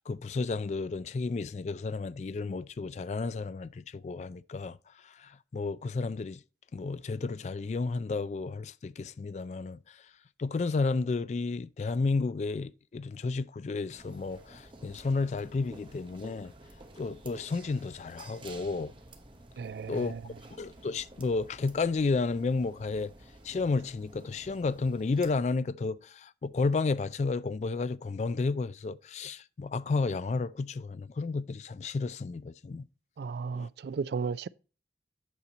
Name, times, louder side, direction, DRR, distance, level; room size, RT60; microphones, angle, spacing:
voice 1, 0.1-6.4 6.7-10.1 10.4-16.5 17.0-18.9 19.9-20.1 20.6-23.1 23.4-32.9 33.5-33.7, left 3 dB, 40° left, 0.3 m, -32 dB
sound 1, 13.9-25.4, right 2 dB, 30° right, 1.0 m, -52 dB
voice 2, 19.6-20.2 33.2-34.5, right 5 dB, 65° right, 0.3 m, -34 dB
8.4 x 5.2 x 4.1 m
head